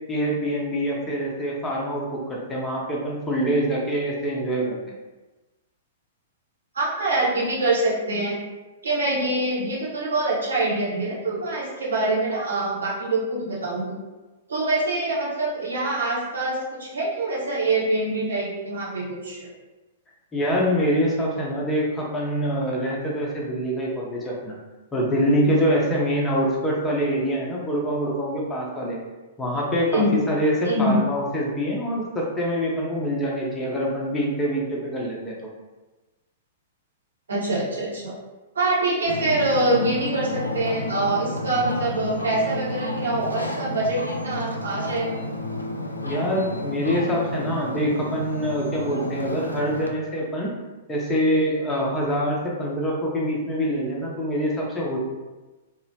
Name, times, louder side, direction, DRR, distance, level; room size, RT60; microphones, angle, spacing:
voice 1, 0.1-4.8 20.3-24.5 24.9-29.0 29.4-35.4 46.0-50.5 50.9-55.0, equal, 15° left, -3 dB, 0.7 m, -25 dB
voice 2, 6.7-8.4 8.8-13.9 14.5-19.5 29.9-30.2 30.7-30.9 37.3-38.1 38.5-45.2, right 2 dB, 75° right, -6 dB, 0.9 m, -25 dB
Ocean, 39.0-49.9, left 1 dB, 90° left, 0.3 m, -31 dB
2.8 x 2.0 x 2.8 m, 1.2 s
figure-of-eight pair, 110°, 0 cm